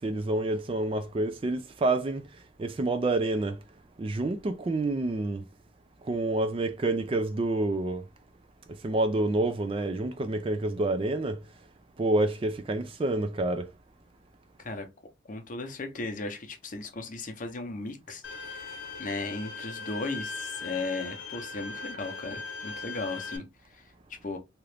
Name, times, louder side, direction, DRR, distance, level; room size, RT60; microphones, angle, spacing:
voice 1, 0.0-3.6 4.0-5.5 6.0-8.0 8.7-11.4 12.0-13.7, right 2 dB, 30° right, 0.3 m, -28 dB
voice 2, 14.6-14.9 15.3-24.4, left 3 dB, 45° left, 0.7 m, -36 dB
Bowed string instrument, 18.2-23.4, left 4 dB, 90° left, 0.7 m, -39 dB
2.9 x 2.4 x 3.2 m
head